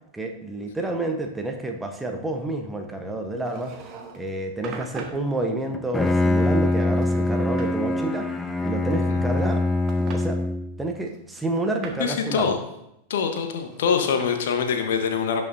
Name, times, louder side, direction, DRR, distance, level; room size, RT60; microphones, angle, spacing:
voice 1, 0.1-3.7 4.2-8.3 8.6-9.6 10.1-10.4 10.8-12.5, right 2 dB, 10° right, 4 dB, 1.0 m, -29 dB
sound 1, 3.5-4.3 4.6-5.2 6.1-6.7 7.0-7.7 8.9-9.6 9.9-10.2 11.1-12.1 13.4-14.2, right 5 dB, 30° right, 1.1 m, -41 dB
Bowed string instrument, 5.7-10.8, left 2 dB, 10° left, 0.6 m, -23 dB
voice 2, 12.0-12.6 13.1-15.4, left 6 dB, 60° left, 6 dB, 1.1 m, -24 dB
17.0 x 5.7 x 2.7 m, 0.82 s
figure-of-eight pair, 90°, 0 cm